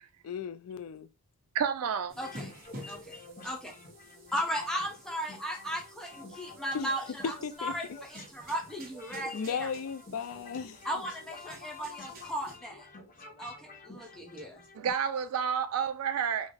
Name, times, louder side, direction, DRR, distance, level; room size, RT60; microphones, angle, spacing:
voice 1, 0.2-1.1 6.7-6.9 7.4-7.7 9.3-10.8, left 6 dB, 70° left, 0.4 m, -36 dB
voice 2, 1.5-2.1 14.8-16.5, right 7 dB, 75° right, 0.3 m, -30 dB
sound 1, 2.1-14.9, left 3 dB, 40° left, 0.8 m, -49 dB
sound 2, 2.1-12.6, right 1 dB, 45° right, 1.2 m, -52 dB
voice 3, 2.2-2.5 2.9-3.2 3.4-3.7 4.3-9.7 10.8-12.9 13.4-14.6, equal, 5° left, 0.8 m, -36 dB
3.8 x 2.0 x 3.4 m
head